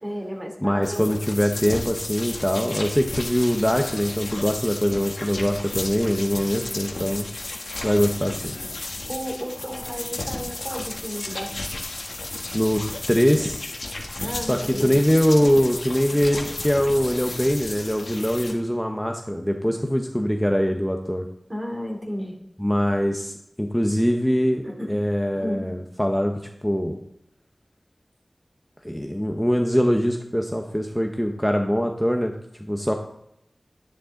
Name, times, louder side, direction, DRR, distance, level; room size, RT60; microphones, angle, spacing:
voice 1, 0.0-1.2 6.5-7.0 9.1-11.7 14.1-15.0 21.5-22.4 24.6-24.9 25.3-25.7, equal, 35° right, 1 dB, 3.3 m, -33 dB
voice 2, 0.6-7.3 7.8-8.6 12.5-13.6 14.4-21.2 22.6-27.0 28.8-32.9, equal, 5° left, 3 dB, 1.0 m, -23 dB
sound 1, 0.8-18.5, left 2 dB, 75° left, 1.5 m, -33 dB
11.5 x 9.9 x 3.9 m, 0.78 s
wide cardioid pair, 45°, 0 cm